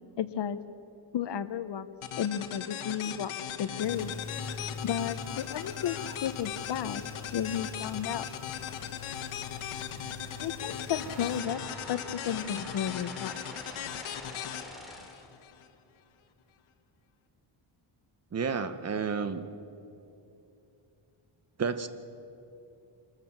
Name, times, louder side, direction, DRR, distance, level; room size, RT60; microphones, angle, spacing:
voice 1, 0.2-0.6 1.1-1.9 2.2-3.3 3.6-4.2 4.8-6.0 6.2-7.0 7.3-8.3 10.4-13.4, left 9 dB, 60° left, 12 dB, 1.0 m, -33 dB
sound 1, 2.0-15.7, left 9 dB, 90° left, 1.5 m, -39 dB
sound 2, 3.8-11.4, left 4 dB, 40° left, 1.9 m, -44 dB
sound 3, 10.9-15.4, left 1 dB, ahead, 2.7 m, -46 dB
voice 2, 18.3-19.4 21.6-21.9, right 5 dB, 30° right, 11 dB, 0.9 m, -31 dB
26.5 x 13.5 x 7.3 m, 2.8 s
wide cardioid pair, 155°, 48 cm